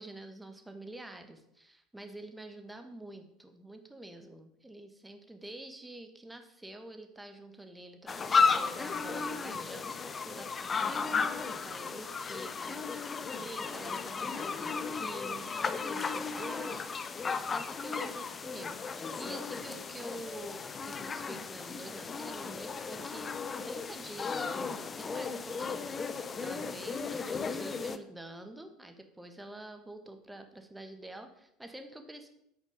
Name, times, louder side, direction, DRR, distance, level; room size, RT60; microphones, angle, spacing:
voice 1, 0.0-23.3 23.6-32.3, right 1 dB, 5° right, 7 dB, 1.5 m, -47 dB
sound 1, 8.1-28.0, left 5 dB, 25° left, 0.7 m, -34 dB
9.6 x 8.4 x 5.2 m, 0.77 s
figure-of-eight pair, 65°, 0 cm